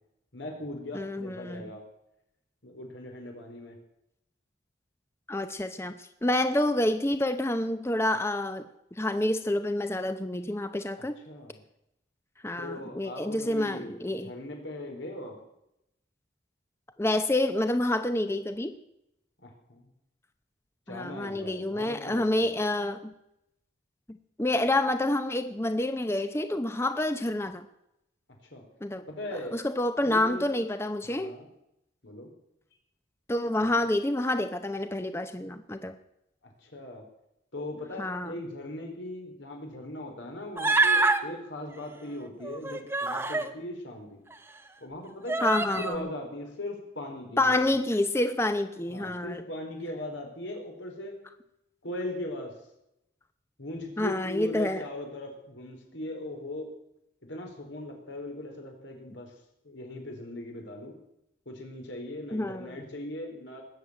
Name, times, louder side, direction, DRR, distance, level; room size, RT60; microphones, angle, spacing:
voice 1, 0.3-1.8 2.6-3.7 11.0-11.6 12.6-14.0 14.2-15.4 19.4-19.9 20.9-22.6 28.5-28.6 29.1-29.5 30.0-30.6 31.0-31.5 32.0-32.3 33.6-33.8 36.6-37.0 37.5-44.2 44.8-47.7 48.9-51.2 51.8-52.5 53.6-56.7 57.2-59.3 59.6-60.9 61.4-63.6, left 1 dB, 85° left, 2 dB, 4.6 m, -39 dB
voice 2, 0.9-1.7 5.3-8.6 9.0-11.1 12.4-14.3 17.0-18.8 20.9-23.1 24.4-27.7 28.8-29.0 29.5-31.3 33.3-36.0 38.0-38.3 45.4-46.0 47.4-49.4 54.0-54.8 62.3-62.8, left 1 dB, 15° left, 9 dB, 0.7 m, -28 dB
Human voice, 40.6-41.2 42.4-43.5 44.3-44.4 45.3-46.0, right 3 dB, 10° right, 0.9 m, -25 dB
20.0 x 7.7 x 8.9 m, 0.83 s
head